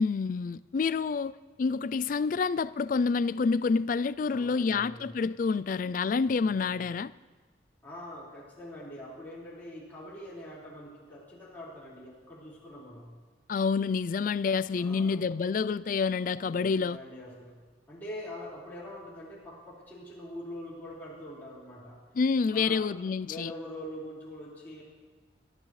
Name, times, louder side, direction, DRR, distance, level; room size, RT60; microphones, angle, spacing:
voice 1, 0.0-7.1 13.5-17.0 22.2-23.5, left 5 dB, 45° left, 0.3 m, -28 dB
voice 2, 4.3-5.2 5.7-5.8 6.4-6.9 7.8-13.1 14.8-15.2 16.4-17.6 17.9-22.0 22.5-22.9 23.2-24.8, left 1 dB, 10° left, 4.8 m, -44 dB
22.0 x 13.5 x 3.2 m
head